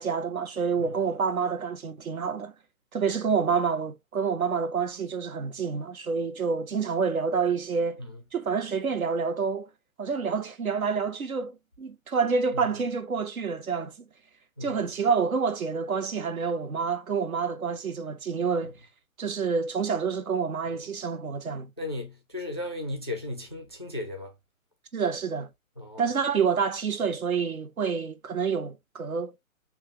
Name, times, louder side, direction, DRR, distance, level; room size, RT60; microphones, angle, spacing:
voice 1, 0.0-2.5 2.9-8.0 8.3-9.7 10.0-14.1 14.6-18.7 19.2-21.7 24.9-25.5 26.0-29.4, right 5 dB, 80° right, 0.9 m, -28 dB
voice 2, 21.8-24.3 25.8-26.0, left 2 dB, 20° left, 0.3 m, -35 dB
5.6 x 2.3 x 2.9 m
figure-of-eight pair, 130°, 42 cm